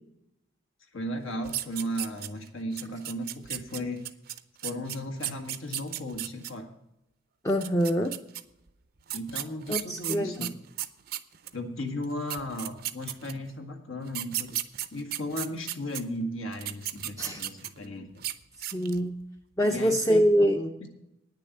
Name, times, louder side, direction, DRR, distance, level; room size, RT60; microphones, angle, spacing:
voice 1, 0.9-4.0 4.6-6.7 9.1-10.5 11.5-14.6 14.9-18.2 19.6-20.9, equal, 80° left, 3 dB, 1.7 m, -35 dB
sound 1, 1.4-2.5 2.8-6.5 7.5-8.4 9.1-11.6 12.0-12.1 12.3-13.5 14.1-16.0 16.5-17.9 18.2-18.3 18.6-19.0, right 13 dB, 45° right, 0.5 m, -34 dB
voice 2, 7.4-8.2 9.7-10.5 17.2-17.4 18.6-19.2 19.6-20.6, equal, 15° left, 3 dB, 0.5 m, -25 dB
9.5 x 6.8 x 8.4 m, 0.83 s
head